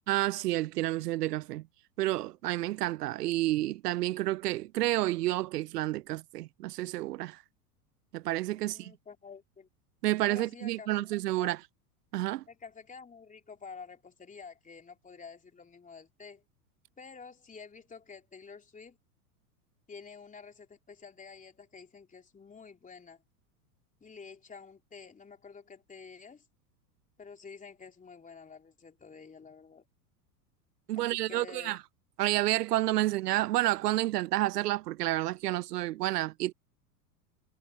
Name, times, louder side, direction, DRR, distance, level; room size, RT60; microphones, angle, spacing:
voice 1, 0.1-1.7 2.0-7.4 8.1-8.9 10.0-11.6 12.1-12.4 30.9-31.8 32.2-36.5, right 16 dB, 85° right, 0.7 m, -30 dB
voice 2, 8.5-9.7 10.3-11.1 11.4-11.5 12.5-16.4 17.0-19.0 19.9-23.2 24.0-26.4 27.2-29.9 31.0-31.8, left 5 dB, 15° left, 3.5 m, -49 dB
hypercardioid pair, 105°, 46 cm